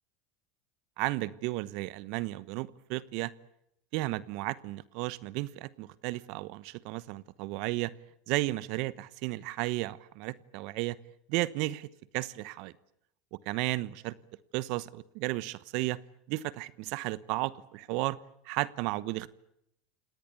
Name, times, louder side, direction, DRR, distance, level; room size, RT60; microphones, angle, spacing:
voice 1, 1.0-3.3 3.9-7.9 8.3-11.0 11.3-11.9 12.1-12.7 13.3-14.2 14.5-16.0 16.3-18.2 18.4-19.3, right 19 dB, 60° right, 19 dB, 1.0 m, -33 dB
28.5 x 18.5 x 8.4 m, 0.79 s
hypercardioid pair, 90°, 0 cm